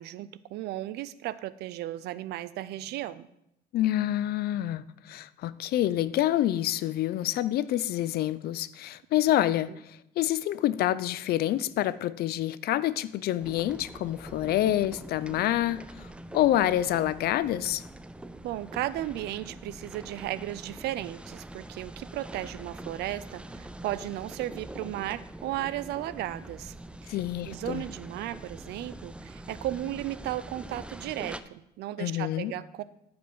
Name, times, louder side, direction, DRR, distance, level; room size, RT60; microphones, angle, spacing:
voice 1, 0.0-3.3 18.4-26.7 27.0-27.2 27.5-32.8, right 14 dB, 80° right, 0.5 m, -35 dB
voice 2, 3.7-15.9 16.3-17.8 27.1-27.8 32.0-32.5, left 13 dB, 70° left, 0.5 m, -27 dB
sound 1, 13.4-31.4, right 1 dB, 5° right, 0.4 m, -44 dB
13.5 x 5.2 x 5.5 m
cardioid pair, 110°, 17 cm